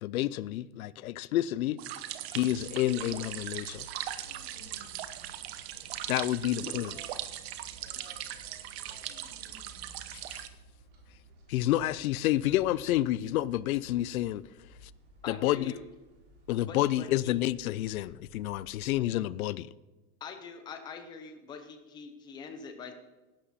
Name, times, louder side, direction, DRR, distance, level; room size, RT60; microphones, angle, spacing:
voice 1, 0.0-1.8 2.3-3.9 6.1-6.9 10.1-10.4 11.5-14.5 14.8-14.9 15.3-15.7 16.5-19.7, left 14 dB, 70° left, 0.7 m, -29 dB
sound 1, 0.7-7.4 7.7-8.0 8.4-10.9 11.6-11.8, left 2 dB, 40° left, 4.7 m, -62 dB
sound 2, 1.8-10.5, right 12 dB, 45° right, 0.9 m, -40 dB
sound 3, 2.4-19.0, equal, 25° right, 3.5 m, -56 dB
voice 2, 6.5-7.3 7.8-9.3 11.2-12.2, right 4 dB, 85° right, 4.1 m, -60 dB
voice 3, 15.2-15.8 16.6-17.4 20.2-22.9, left 5 dB, 10° left, 0.6 m, -44 dB
16.0 x 11.5 x 4.2 m
supercardioid pair, 175°, 43 cm